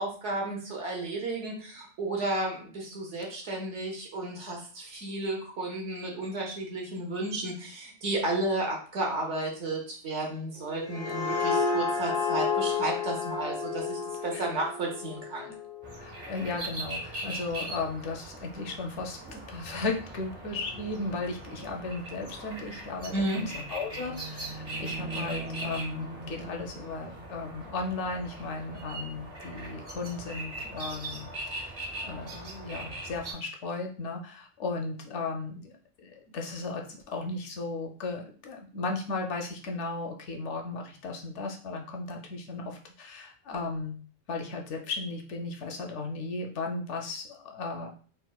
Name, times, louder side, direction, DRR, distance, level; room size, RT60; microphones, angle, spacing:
voice 1, 0.0-15.5 23.1-23.4, right 2 dB, 70° right, -1 dB, 1.2 m, -33 dB
sound 1, 10.6-16.1, left 5 dB, 50° left, 0.4 m, -31 dB
sound 2, 15.8-33.3, right 2 dB, 35° right, 0.7 m, -40 dB
voice 2, 16.0-44.0 44.3-47.9, left 3 dB, 70° left, 2 dB, 0.8 m, -36 dB
4.0 x 2.1 x 2.2 m, 0.41 s
omnidirectional pair, 1.3 m